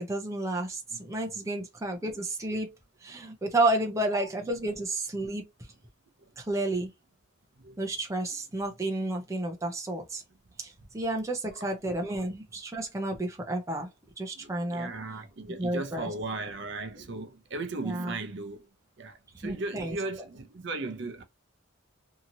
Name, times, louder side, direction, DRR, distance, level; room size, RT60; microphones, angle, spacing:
voice 1, 0.0-2.7 3.0-5.4 6.4-6.9 7.8-10.2 10.6-13.9 14.2-14.9 15.6-16.1 17.8-18.1 19.4-20.0, right 2 dB, 15° right, 0.5 m, -31 dB
voice 2, 14.4-18.7 19.0-21.2, right 3 dB, 55° right, 0.6 m, -37 dB
2.8 x 2.8 x 2.5 m
head